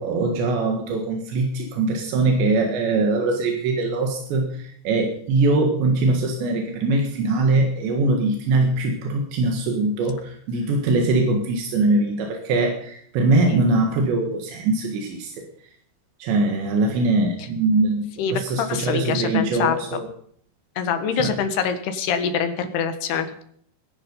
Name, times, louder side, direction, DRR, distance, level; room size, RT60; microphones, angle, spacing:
voice 1, 0.0-15.5 16.2-20.1 21.2-21.3, right 2 dB, 85° right, 2 dB, 4.0 m, -22 dB
voice 2, 18.2-20.0 20.8-23.4, left 7 dB, 70° left, 8 dB, 3.4 m, -25 dB
22.0 x 10.5 x 5.4 m, 0.63 s
omnidirectional pair, 5.0 m